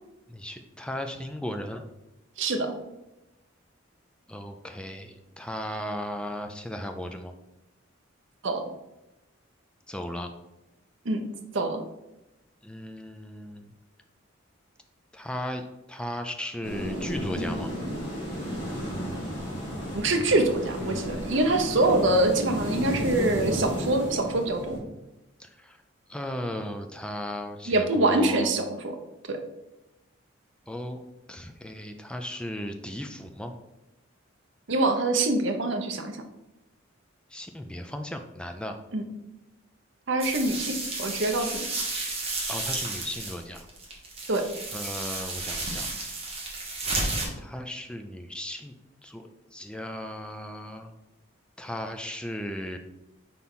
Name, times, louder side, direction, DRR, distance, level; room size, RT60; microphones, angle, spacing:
voice 1, 0.3-1.8 4.3-7.3 9.9-10.3 12.6-13.7 15.1-17.7 25.4-25.8 26.1-28.5 30.7-31.0 31.3-33.5 37.3-38.8 42.5-43.7 44.7-46.2 47.4-48.7 49.0-50.9 51.6-52.8, left 1 dB, 5° left, 5 dB, 0.4 m, -36 dB
voice 2, 2.4-2.7 8.4-8.6 11.0-11.2 11.5-11.8 19.9-24.8 27.7-28.9 29.3-29.4 34.7-36.2 38.9-39.0 40.1-41.6 44.3-44.5, right 2 dB, 65° right, 5 dB, 0.8 m, -25 dB
sound 1, 16.6-24.8, equal, 30° left, 2.2 m, -33 dB
sound 2, 40.2-47.3, right 2 dB, 30° right, 1.4 m, -32 dB
4.4 x 4.2 x 5.4 m, 0.94 s
head